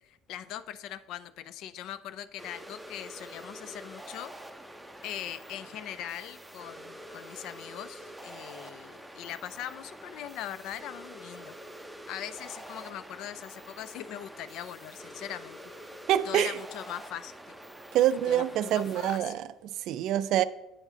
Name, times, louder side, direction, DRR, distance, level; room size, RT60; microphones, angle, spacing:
voice 1, 0.0-4.3 5.0-11.5 12.1-15.6 16.2-17.6 18.3-19.4, left 11 dB, 65° left, 0.4 m, -41 dB
sound 1, 2.4-19.2, right 1 dB, 5° right, 0.7 m, -46 dB
voice 2, 16.1-16.6 17.9-20.4, right 12 dB, 65° right, 0.3 m, -26 dB
8.7 x 4.8 x 5.1 m
hypercardioid pair, 65°, 0 cm